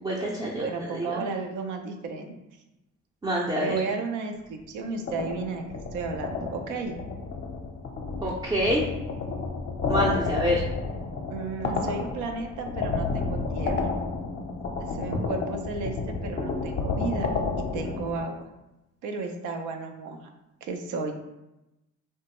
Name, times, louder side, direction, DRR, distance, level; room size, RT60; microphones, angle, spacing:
voice 1, 0.0-0.7 0.9-1.3 3.2-3.8 8.2-8.8 9.9-10.6 15.1-15.2, equal, 15° right, -3 dB, 0.4 m, -26 dB
voice 2, 0.6-2.3 3.6-5.6 5.9-7.0 11.3-13.9 14.8-17.3 17.6-18.4 19.0-20.3 20.6-21.1, right 4 dB, 85° right, 5 dB, 0.5 m, -33 dB
sound 1, 5.0-18.2, left 4 dB, 35° left, 0.5 m, -31 dB
3.0 x 2.2 x 2.9 m, 0.95 s
cardioid pair, 90°, 30 cm